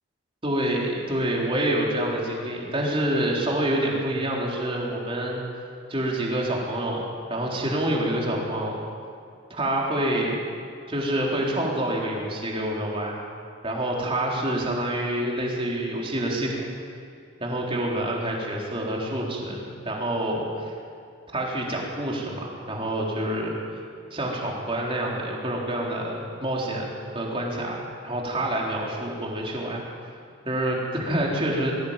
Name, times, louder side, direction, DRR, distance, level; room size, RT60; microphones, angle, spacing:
voice 1, 0.4-5.4 5.9-8.8 9.5-10.4 10.9-13.2 13.6-16.6 17.4-20.7 21.3-23.6 24.1-26.9 27.1-29.8 30.5-31.7, right 1 dB, 25° right, -2 dB, 3.9 m, -27 dB
21.5 x 16.5 x 8.9 m, 2.3 s
head